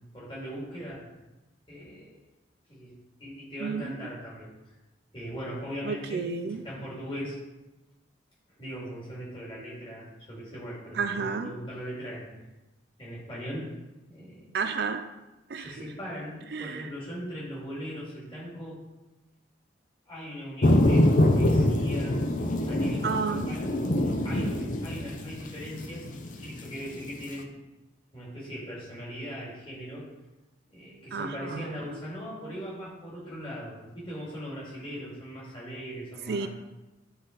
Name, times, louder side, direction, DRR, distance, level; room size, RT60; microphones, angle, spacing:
voice 1, 0.1-1.0 1.7-2.1 2.7-2.9 3.2-4.5 5.1-6.2 6.5-7.4 8.6-12.3 13.0-13.8 14.1-14.5 15.5-18.8 20.1-22.2 22.7-23.8 24.2-26.1 26.4-27.5 28.1-30.1 30.7-36.5, equal, 25° left, -6 dB, 2.5 m, -39 dB
voice 2, 3.6-4.1 5.8-6.6 10.9-11.5 14.5-15.0 15.5-15.7 16.5-16.9 23.0-23.5 31.1-31.7 36.3-36.5, right 5 dB, 55° right, 8 dB, 0.4 m, -31 dB
sound 1, 20.6-27.3, left 1 dB, 40° left, 0.6 m, -25 dB
10.5 x 4.0 x 3.9 m, 1.0 s
head